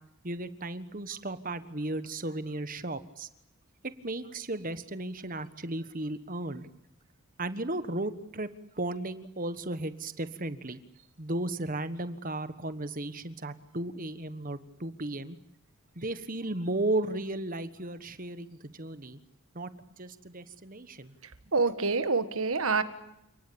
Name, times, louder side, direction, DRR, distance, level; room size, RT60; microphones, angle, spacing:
voice 1, 0.2-3.3 4.0-6.7 7.4-8.5 8.7-10.8 11.2-15.4 15.9-19.2 19.5-19.7 20.0-21.1, right 2 dB, 40° right, 12 dB, 1.4 m, -35 dB
voice 2, 21.5-22.8, right 4 dB, 70° right, 10 dB, 1.7 m, -26 dB
29.0 x 19.0 x 8.8 m, 0.82 s
head